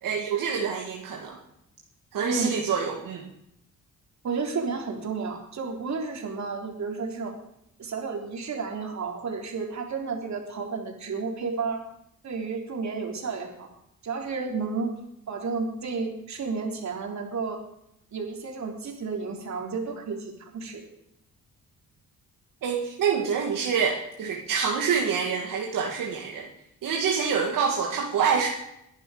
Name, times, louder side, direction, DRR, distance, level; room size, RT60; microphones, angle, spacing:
voice 1, 0.0-1.4 2.1-3.3 22.6-26.5 26.8-28.5, right 6 dB, 80° right, -1 dB, 2.2 m, -26 dB
voice 2, 2.2-2.6 4.2-7.3 7.8-11.8 12.2-13.7 14.0-14.9 15.3-17.6 18.1-20.8, right 4 dB, 60° right, 2 dB, 3.7 m, -32 dB
21.5 x 11.0 x 5.0 m, 0.80 s
cardioid pair, 100°, 32 cm